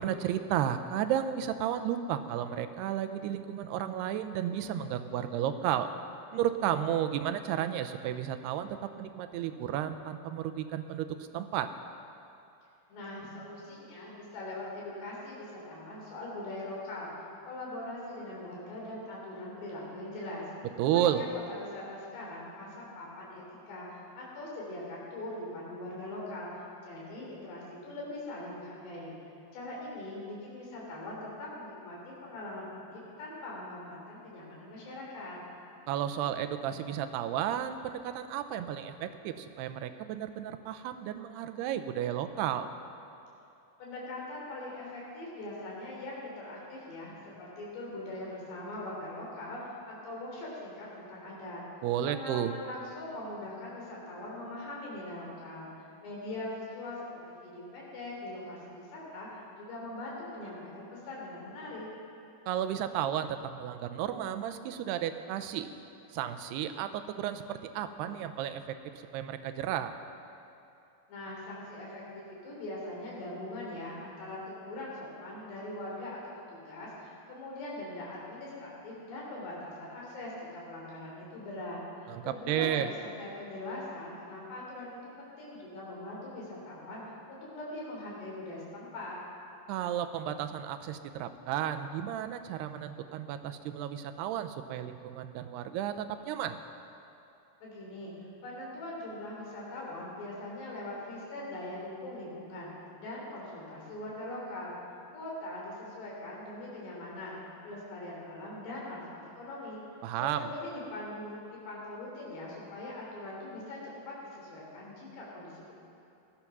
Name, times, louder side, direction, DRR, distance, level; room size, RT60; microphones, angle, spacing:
voice 1, 0.0-5.9 6.3-11.7 20.8-21.2 35.9-42.7 51.8-52.5 62.5-65.7 66.1-69.9 82.1-82.9 89.7-96.6 110.0-110.5, right 10 dB, 85° right, 9 dB, 2.7 m, -33 dB
voice 2, 12.9-17.1 17.5-20.5 20.9-26.5 26.8-29.2 29.5-35.4 43.8-51.6 52.1-55.7 56.0-57.0 57.4-61.9 71.1-76.2 76.5-89.2 97.6-98.1 98.4-102.7 103.0-104.7 105.1-107.4 107.6-109.8 110.2-115.7, left 1 dB, 85° left, -4 dB, 5.7 m, -41 dB
17.0 x 13.0 x 6.0 m, 2.8 s
omnidirectional pair, 4.7 m